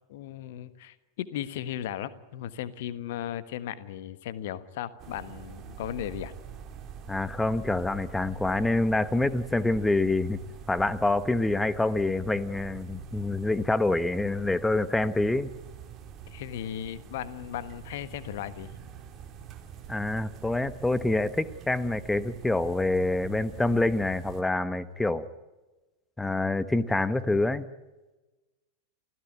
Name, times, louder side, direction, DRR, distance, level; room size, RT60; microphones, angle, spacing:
voice 1, 0.1-6.3 16.3-18.7, left 11 dB, 55° left, 14 dB, 1.4 m, -36 dB
sound 1, 5.0-24.4, right 8 dB, 30° right, 3.3 m, -45 dB
voice 2, 7.1-10.4 10.7-15.5 19.9-25.2 26.2-27.7, left 2 dB, 5° left, 15 dB, 1.1 m, -26 dB
29.0 x 16.0 x 10.0 m, 1.2 s
figure-of-eight pair, 90°, 0 cm